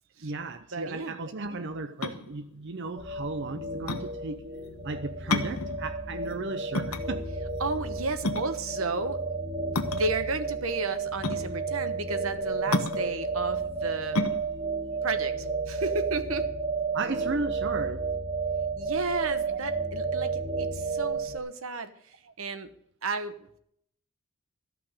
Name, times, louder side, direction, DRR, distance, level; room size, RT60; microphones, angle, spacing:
voice 1, 0.2-4.5 4.8-7.3 16.9-18.1 19.5-19.8 22.3-22.4, right 3 dB, 55° right, 0.7 m, -35 dB
voice 2, 0.7-1.2 7.6-9.2 9.9-14.3 15.0-16.5 18.8-21.9 22.4-22.7 23.0-23.4, right 3 dB, 70° right, 1.2 m, -33 dB
sound 1, 1.8-16.2, left 2 dB, 85° left, 1.3 m, -33 dB
sound 2, 3.0-21.4, right 4 dB, 35° right, 2.7 m, -32 dB
13.5 x 5.8 x 9.7 m
head